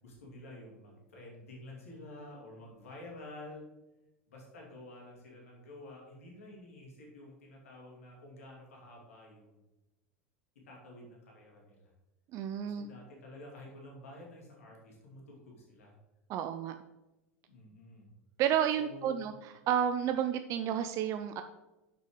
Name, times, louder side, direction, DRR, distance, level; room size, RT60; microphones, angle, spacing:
voice 1, 0.0-3.6 4.3-9.6 10.7-11.9 12.6-15.9 17.5-18.1 18.8-19.3, left 1 dB, 80° left, -2 dB, 2.4 m, -50 dB
voice 2, 12.3-12.9 16.3-16.7 18.4-21.4, right 9 dB, 50° right, 9 dB, 0.5 m, -31 dB
6.2 x 5.6 x 5.1 m, 1.0 s
hypercardioid pair, 90°, 7 cm